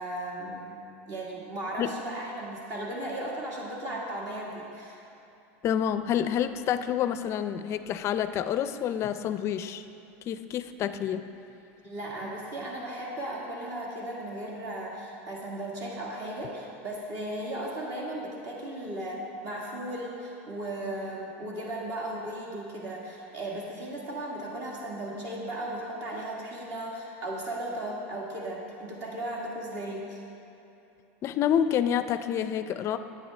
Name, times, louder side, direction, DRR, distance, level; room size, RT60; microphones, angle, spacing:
voice 1, 0.0-5.0 11.8-30.2, right 1 dB, 50° right, -3 dB, 1.7 m, -36 dB
voice 2, 5.6-9.8 10.3-11.2 31.2-33.0, left 9 dB, 40° left, 11 dB, 0.4 m, -28 dB
12.0 x 9.0 x 3.3 m, 2.8 s
supercardioid pair, 130°, 7 cm